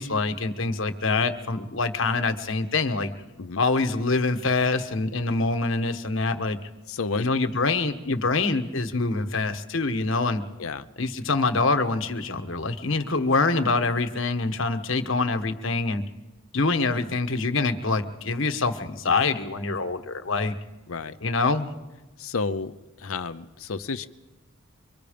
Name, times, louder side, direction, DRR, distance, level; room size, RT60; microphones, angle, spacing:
voice 1, 0.0-3.1 3.6-6.6 7.2-10.4 11.0-16.0 16.5-20.6 21.2-21.7, left 3 dB, 65° left, 8 dB, 1.3 m, -25 dB
voice 2, 6.9-7.3 10.6-10.9 20.9-21.2 22.2-24.1, left 4 dB, 80° left, 10 dB, 0.7 m, -31 dB
24.5 x 24.5 x 5.2 m, 1.1 s
head